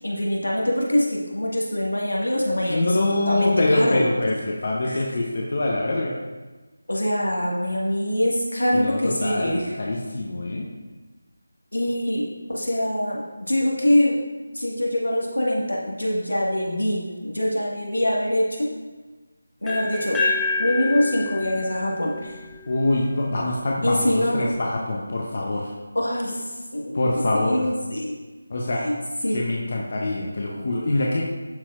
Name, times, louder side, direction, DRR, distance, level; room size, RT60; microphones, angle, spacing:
voice 1, 0.0-4.0 4.8-5.0 6.9-9.7 11.7-14.2 14.5-18.7 19.6-20.2 20.6-22.4 23.8-24.5 26.0-26.4 26.7-28.2 28.7-29.0 29.2-29.4, left 1 dB, 85° left, -3 dB, 1.7 m, -24 dB
voice 2, 2.7-6.1 8.7-10.7 22.7-25.7 26.9-27.6 28.5-28.8 29.3-31.2, left 2 dB, 50° left, -2 dB, 0.8 m, -24 dB
sound 1, 19.7-23.5, left 3 dB, 10° left, 0.8 m, -29 dB
11.5 x 4.3 x 2.5 m, 1.2 s
figure-of-eight pair, 160°, 0 cm